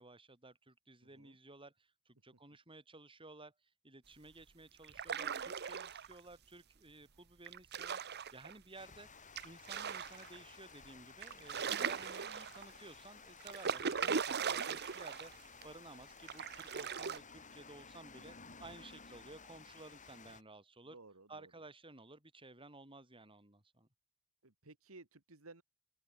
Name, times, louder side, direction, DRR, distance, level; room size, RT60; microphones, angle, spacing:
voice 1, 0.0-9.1 9.4-21.0 21.3-23.9, right 2 dB, 25° right, 6.2 m, -55 dB
voice 2, 1.0-1.4 11.7-12.0 20.9-21.6 24.4-25.6, right 3 dB, 70° right, 2.1 m, -57 dB
sound 1, 4.8-6.2 7.5-8.5 9.4-10.4 10.8-10.9 11.2-12.8 13.4-15.3 15.6-15.7 16.3-17.2, right 6 dB, 50° right, 1.1 m, -39 dB
Water, 8.7-20.4, left 5 dB, 35° left, 5.2 m, -56 dB
open air
head